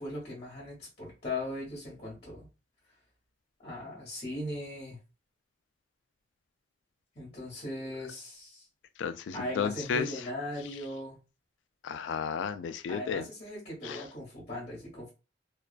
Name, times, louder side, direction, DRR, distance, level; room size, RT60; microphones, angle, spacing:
voice 1, 0.0-2.5 3.6-5.0 7.1-8.6 9.3-11.2 12.9-15.1, left 1 dB, 35° left, 1.0 m, -39 dB
voice 2, 9.0-10.2 11.8-13.3 13.8-14.0, left 6 dB, 70° left, 0.3 m, -33 dB
2.3 x 2.2 x 2.3 m
head